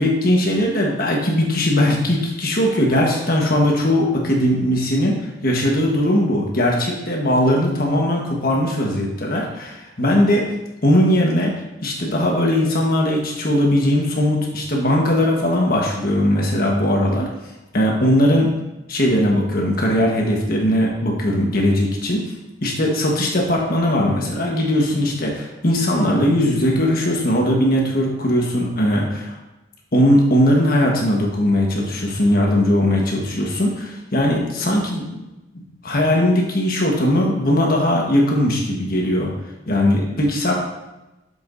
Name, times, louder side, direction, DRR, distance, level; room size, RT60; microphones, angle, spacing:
voice 1, 0.0-10.4 10.8-11.5 11.8-17.3 17.7-18.5 18.9-22.2 22.6-29.3 29.9-35.2 35.5-39.3 39.7-40.5, left 1 dB, 55° left, -1 dB, 1.4 m, -19 dB
6.9 x 6.8 x 2.7 m, 1.0 s
head